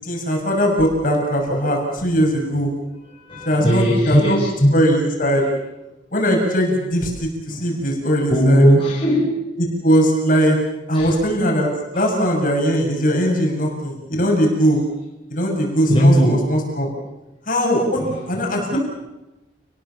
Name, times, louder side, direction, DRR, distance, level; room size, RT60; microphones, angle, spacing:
voice 1, 0.0-2.7 3.4-4.4 4.7-5.4 6.1-8.7 9.6-10.6 10.9-11.7 11.9-14.8 15.3-16.9 17.5-18.8, equal, 45° left, 1 dB, 6.8 m, -20 dB
voice 2, 3.3-4.8 7.5-7.7 8.3-9.3 10.9-11.1 11.9-12.0 15.9-16.4 18.0-18.1 18.7-18.8, equal, 30° left, -4 dB, 5.6 m, -17 dB
29.5 x 20.5 x 7.1 m, 1.0 s
head